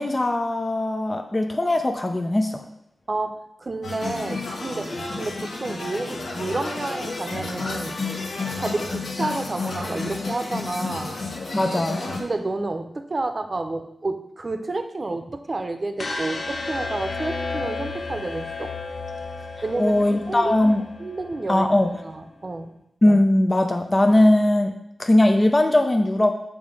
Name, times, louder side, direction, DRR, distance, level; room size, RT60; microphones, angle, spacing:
voice 1, 0.0-2.6 11.5-12.0 19.8-20.8 21.5-21.9 23.0-24.7 25.0-26.3, left 1 dB, 30° left, 5 dB, 0.6 m, -19 dB
voice 2, 3.1-8.1 8.6-11.2 12.2-18.7 19.6-20.6 21.0-21.7 22.0-22.7, right 2 dB, 40° right, 7 dB, 0.7 m, -30 dB
sound 1, 3.8-12.2, left 3 dB, 75° left, 1.4 m, -31 dB
sound 2, 16.0-22.1, left 3 dB, 60° left, 0.8 m, -33 dB
6.9 x 3.6 x 5.3 m, 0.77 s
cardioid pair, 50°, 0 cm